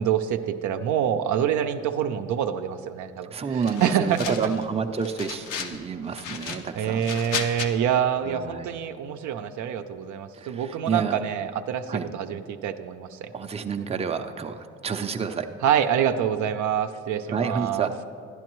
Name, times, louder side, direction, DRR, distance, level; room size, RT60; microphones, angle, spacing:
voice 1, 0.0-3.3 3.8-4.2 6.8-13.3 15.6-17.9, right 9 dB, 75° right, 8 dB, 0.5 m, -26 dB
voice 2, 3.3-7.1 8.2-8.7 10.3-11.2 11.9-12.1 13.3-15.5 17.3-18.0, right 6 dB, 20° right, 6 dB, 0.5 m, -29 dB
sound 1, 3.6-4.6 5.0-5.8 6.1-7.7, left 6 dB, 80° left, 0.7 m, -34 dB
11.5 x 10.5 x 3.0 m, 2.3 s
cardioid pair, 90°, 30 cm